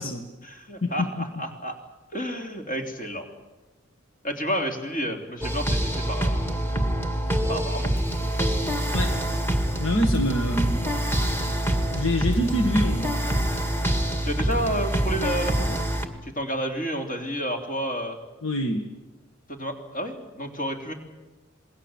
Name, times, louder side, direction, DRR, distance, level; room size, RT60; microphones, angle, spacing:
voice 1, 0.4-1.8 2.1-3.3 4.2-6.5 7.5-7.9 14.2-15.8 16.2-18.2 19.5-20.9, equal, 45° left, 3 dB, 3.4 m, -30 dB
sound 1, 5.4-16.1, right 1 dB, 10° left, 2.0 m, -25 dB
voice 2, 9.8-10.8 11.9-13.1 18.4-18.9, left 1 dB, 75° left, 5 dB, 1.8 m, -25 dB
27.5 x 20.0 x 7.5 m, 1.1 s
head